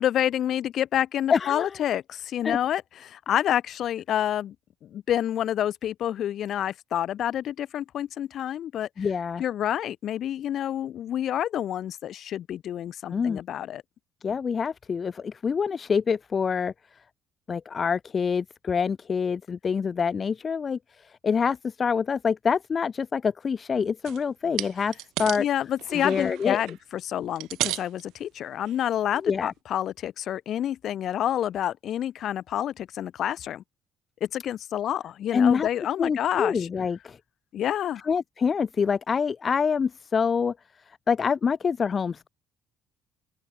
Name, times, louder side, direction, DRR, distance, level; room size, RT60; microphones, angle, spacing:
voice 1, 0.0-4.5 4.8-9.1 9.4-13.8 25.4-33.6 34.2-36.7 37.5-38.0, left 11 dB, 60° left, 4.9 m, -28 dB
voice 2, 1.3-1.8 2.4-2.6 9.0-9.4 13.1-13.4 14.2-16.7 17.5-20.8 21.0-24.9 25.2-25.5 25.9-26.6 29.2-29.5 35.3-35.7 36.0-37.2 38.0-40.5 40.9-42.3, left 6 dB, 40° left, 1.6 m, -26 dB
sound 1, 24.0-24.2 24.6-25.4 25.8-26.8 27.2-28.0 28.6-28.8 29.3-29.4, right 16 dB, 75° right, 1.5 m, -33 dB
open air
supercardioid pair, 70°, 0 cm